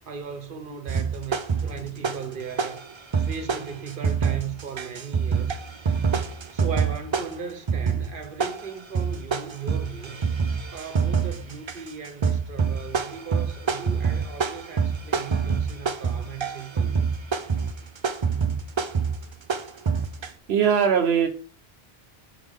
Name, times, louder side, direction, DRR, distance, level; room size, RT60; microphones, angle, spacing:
voice 1, 0.1-2.8 3.2-5.6 6.5-10.2 10.7-17.1, right 6 dB, 60° right, 1.1 m, -37 dB
sound 1, 0.9-2.3 2.6-20.3, right 6 dB, 40° right, 0.4 m, -26 dB
voice 2, 20.5-21.3, right 7 dB, 80° right, 0.9 m, -20 dB
5.5 x 3.6 x 5.2 m
omnidirectional pair, 1.0 m